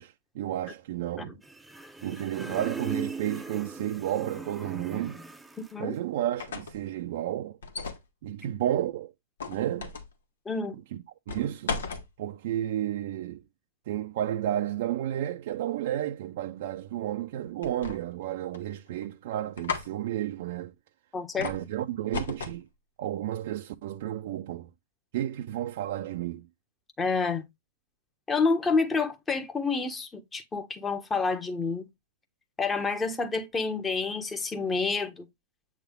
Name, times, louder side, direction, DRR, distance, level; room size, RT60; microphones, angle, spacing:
voice 1, 0.0-1.4 2.0-5.2 5.8-7.6 8.2-9.1 9.5-9.9 10.9-11.0 11.3-11.8 12.2-13.4 13.9-20.7 21.4-22.7 23.0-24.7 25.1-26.5, right 12 dB, 60° right, 0.6 m, -32 dB
sound 1, 1.4-5.8, right 4 dB, 5° right, 0.8 m, -39 dB
voice 2, 5.6-5.9 10.4-10.7 21.1-21.5 27.0-27.5 28.3-31.8 32.6-35.3, left 4 dB, 15° left, 1.2 m, -28 dB
sound 2, 6.2-6.8 7.6-8.1 9.4-10.1 11.3-12.1 17.6-18.2 18.5-19.1 19.6-19.9 21.4-21.7 22.1-22.6, left 4 dB, 80° left, 1.7 m, -35 dB
8.0 x 3.5 x 3.7 m
hypercardioid pair, 120°, 0 cm